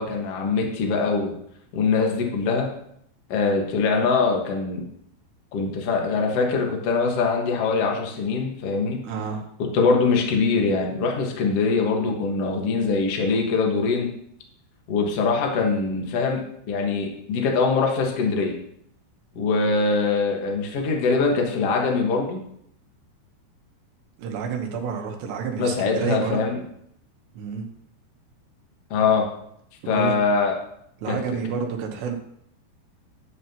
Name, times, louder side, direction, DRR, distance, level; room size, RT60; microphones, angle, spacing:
voice 1, 0.0-1.3 1.7-2.7 3.3-4.8 5.5-9.0 9.6-14.1 14.9-16.4 16.7-18.5 19.3-22.4 25.6-26.6 28.9-29.3 29.9-30.5 31.1-31.2, left 4 dB, 85° left, 0 dB, 1.3 m, -23 dB
voice 2, 9.0-9.4 19.6-19.7 24.2-26.4 27.3-27.7 29.8-30.2 31.0-32.1, right 6 dB, 75° right, 3 dB, 3.1 m, -29 dB
11.5 x 9.6 x 2.9 m, 0.72 s
omnidirectional pair, 5.4 m